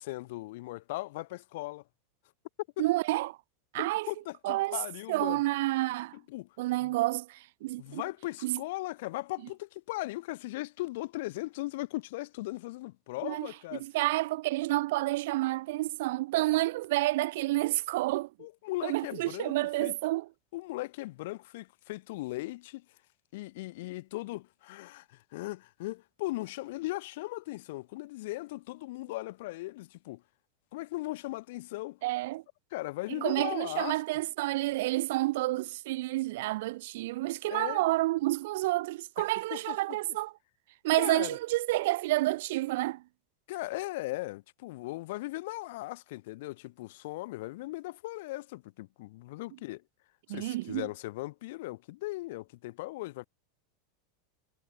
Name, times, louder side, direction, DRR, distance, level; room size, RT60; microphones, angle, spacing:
voice 1, 0.0-1.8 2.8-2.9 3.8-5.4 6.1-6.5 6.8-6.9 7.8-13.8 18.4-19.5 19.8-20.0 20.5-22.8 23.3-30.2 30.7-32.0 32.7-34.0 37.5-37.8 39.2-39.3 39.5-40.0 40.9-41.4 43.5-49.8 50.3-53.3, left 19 dB, 60° left, 0.5 m, -38 dB
voice 2, 2.8-3.4 3.7-4.1 4.4-4.8 5.1-6.2 6.6-8.0 8.4-8.6 13.2-13.5 13.8-18.3 18.8-20.3 32.0-32.4 33.1-40.3 40.8-43.0 50.3-50.9, right 18 dB, 65° right, 0.4 m, -29 dB
supercardioid pair, 160°, 0 cm